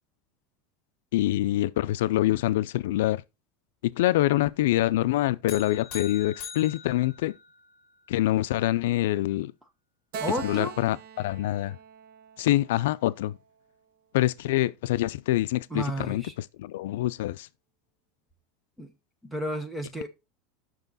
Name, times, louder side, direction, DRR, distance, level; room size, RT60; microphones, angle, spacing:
voice 1, 1.1-3.2 3.8-7.3 8.1-9.5 10.4-11.8 12.4-13.4 14.1-16.2 16.6-17.5, left 15 dB, 80° left, 0.4 m, -25 dB
sound 1, 5.5-7.9, left 7 dB, 35° left, 3.6 m, -42 dB
Keyboard (musical), 10.1-13.6, right 7 dB, 50° right, 1.1 m, -42 dB
voice 2, 10.2-10.7 15.7-16.3 18.8-18.9 19.2-20.1, right 1 dB, 5° right, 1.0 m, -32 dB
9.2 x 6.1 x 4.0 m
supercardioid pair, 180°, 0 cm